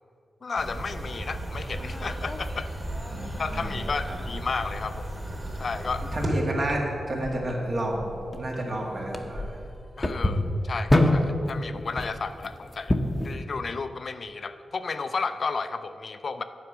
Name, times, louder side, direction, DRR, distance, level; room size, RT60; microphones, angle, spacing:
voice 1, 0.4-2.7 3.4-5.1 5.6-6.0 10.0-12.9 13.2-16.4, left 4 dB, 50° left, 10 dB, 0.4 m, -32 dB
sound 1, 0.6-6.3, right 1 dB, 25° right, 2.1 m, -35 dB
sound 2, 1.2-13.3, left 1 dB, 20° left, 0.7 m, -30 dB
voice 2, 3.1-3.8 4.1-4.2 6.1-9.6, right 1 dB, 50° right, -1 dB, 1.8 m, -30 dB
9.7 x 4.8 x 7.0 m, 2.5 s
wide cardioid pair, 100°, 0 cm